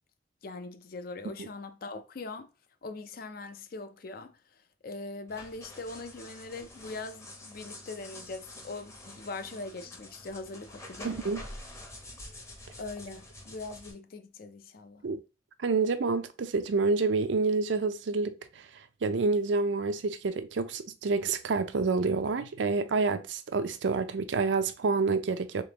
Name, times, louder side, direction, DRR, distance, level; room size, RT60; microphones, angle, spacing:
voice 1, 0.4-2.5 2.8-11.2 12.8-15.0, left 3 dB, 55° left, 0.5 m, -41 dB
sound 1, 5.3-13.9, left 1 dB, 15° left, 0.7 m, -47 dB
voice 2, 11.0-11.4 15.0-15.2 15.6-18.4 19.0-25.6, right 4 dB, 85° right, 0.5 m, -28 dB
3.8 x 3.5 x 2.9 m
head